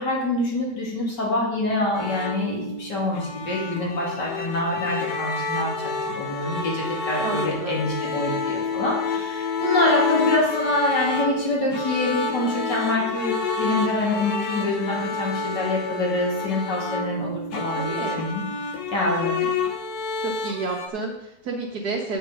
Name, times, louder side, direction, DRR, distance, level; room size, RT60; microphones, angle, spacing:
voice 1, 0.0-5.7 6.0-18.4 18.9-19.4, left 2 dB, 85° left, -3 dB, 3.3 m, -25 dB
sound 1, 1.9-20.9, left 4 dB, 65° left, 1.5 m, -29 dB
voice 2, 7.2-7.9 17.7-18.2 19.4-19.5 20.2-22.2, right 3 dB, 70° right, -2 dB, 1.7 m, -30 dB
8.2 x 6.7 x 6.4 m, 0.83 s
omnidirectional pair, 1.8 m